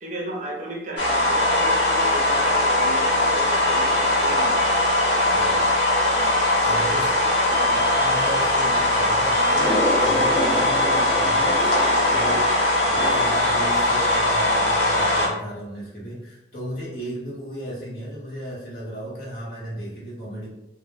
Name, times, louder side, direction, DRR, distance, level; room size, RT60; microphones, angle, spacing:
voice 1, 0.0-4.9 5.3-5.6 6.1-6.4 6.7-7.0 7.5-7.8 12.0-12.4, right 1 dB, 45° right, -1 dB, 0.5 m, -35 dB
sound 1, 1.0-15.3, left 1 dB, 80° left, 0.8 m, -20 dB
voice 2, 5.3-5.8 6.6-7.2 7.7-20.5, right 1 dB, 55° left, -6 dB, 0.9 m, -35 dB
sound 2, 9.6-13.6, equal, 20° left, 0.4 m, -28 dB
2.1 x 2.1 x 3.0 m, 0.88 s
head